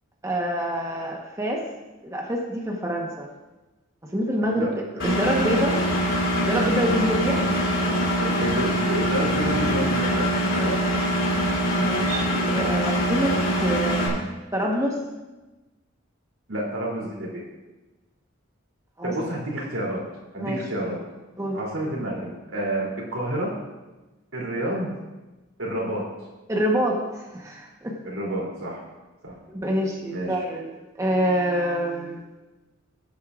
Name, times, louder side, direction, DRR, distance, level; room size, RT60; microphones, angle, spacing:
voice 1, 0.2-1.6 2.0-3.3 4.1-5.8 6.5-7.4 7.8-8.0 11.7-14.2 14.5-14.9 19.0-19.1 20.4-20.6 21.4-21.6 26.5-27.9 29.5-30.7 31.0-32.2, equal, 15° right, -1 dB, 1.1 m, -26 dB
Engine, 5.0-14.1, equal, 65° left, 2.8 m, -23 dB
voice 2, 8.2-10.7 16.5-17.4 19.0-20.0 20.3-21.0 21.5-23.5 24.3-24.9 25.6-26.0 28.0-28.8 29.2-29.3 30.1-30.4, right 1 dB, 85° right, -3 dB, 3.1 m, -29 dB
16.0 x 8.3 x 2.5 m, 1.1 s
head